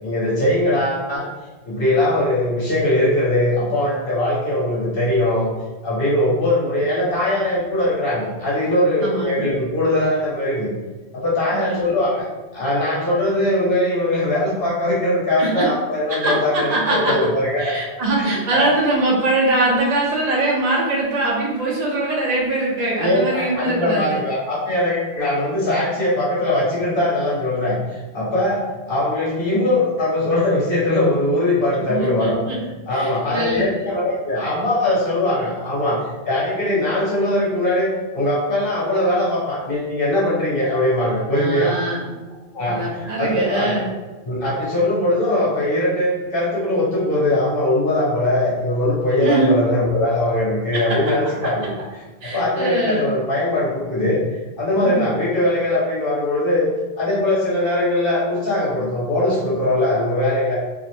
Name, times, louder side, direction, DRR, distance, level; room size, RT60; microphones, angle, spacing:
voice 1, 0.0-1.2 1.7-5.5 5.8-10.7 11.1-12.2 12.5-17.7 18.2-18.7 23.0-32.4 32.9-37.9 38.1-41.7 42.5-43.8 44.2-51.7 52.2-54.2 54.6-56.7 57.0-60.6, left 1 dB, 60° left, -7 dB, 1.0 m, -21 dB
voice 2, 9.0-9.5 11.5-12.0 15.4-15.7 16.1-17.1 17.6-24.2 31.9-32.6 32.9-33.9 41.3-42.1 42.6-43.9 49.2-49.5 50.7-51.1 51.4-51.7 52.2-53.1 54.8-55.1, right 2 dB, 45° right, -3 dB, 0.7 m, -22 dB
2.6 x 2.1 x 2.7 m, 1.2 s
omnidirectional pair, 1.1 m